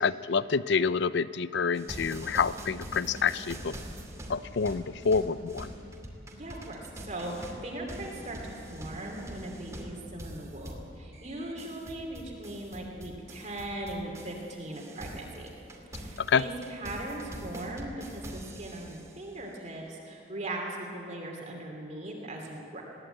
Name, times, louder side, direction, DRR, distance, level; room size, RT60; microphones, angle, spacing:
voice 1, 0.0-3.8 4.3-5.7 16.2-16.4, left 5 dB, 60° left, 16 dB, 0.5 m, -27 dB
sound 1, 1.7-14.5 14.7-19.1, right 1 dB, 15° right, 2.7 m, -43 dB
voice 2, 6.4-15.5 15.9-22.8, right 1 dB, 35° right, 0 dB, 2.8 m, -39 dB
20.5 x 17.0 x 9.0 m, 2.7 s
head